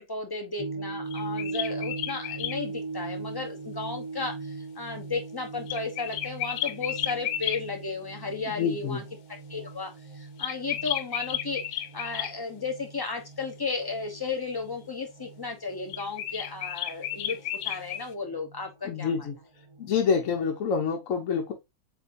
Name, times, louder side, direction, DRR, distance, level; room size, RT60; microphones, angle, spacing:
voice 1, 0.0-9.0 9.5-11.6 11.9-17.4 17.6-19.3, left 4 dB, 20° left, 0.6 m, -34 dB
sound 1, 0.6-20.0, right 3 dB, 55° right, 0.3 m, -41 dB
sound 2, 1.1-2.6 5.7-7.6 10.4-12.3 15.9-18.1, left 12 dB, 90° left, 1.1 m, -32 dB
voice 2, 8.5-9.0 18.9-19.3 19.8-21.5, left 6 dB, 60° left, 1.2 m, -27 dB
7.6 x 2.6 x 2.5 m
omnidirectional pair, 1.6 m